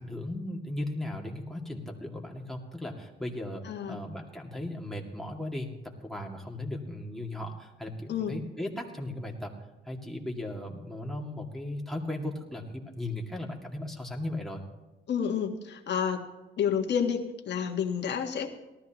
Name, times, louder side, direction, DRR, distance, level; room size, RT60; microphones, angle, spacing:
voice 1, 0.0-9.5 9.9-14.6, left 1 dB, ahead, 0 dB, 2.2 m, -37 dB
voice 2, 3.6-4.0 8.1-8.3 15.1-16.2 16.6-18.5, left 7 dB, 60° left, 2 dB, 1.6 m, -29 dB
18.5 x 13.5 x 3.0 m, 1.1 s
cardioid pair, 90°, 20 cm